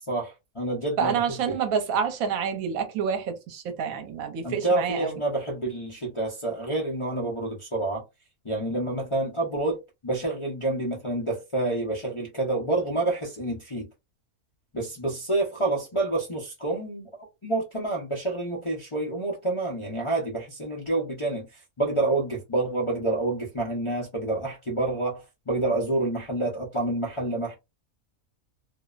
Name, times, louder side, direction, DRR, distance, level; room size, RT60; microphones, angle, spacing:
voice 1, 0.1-1.2 1.5-1.6 4.4-8.0 8.4-13.9 14.7-27.5, right 2 dB, 40° left, 0.4 m, -28 dB
voice 2, 1.0-5.2, right 7 dB, 75° right, 1.1 m, -28 dB
2.6 x 2.0 x 2.3 m
omnidirectional pair, 1.5 m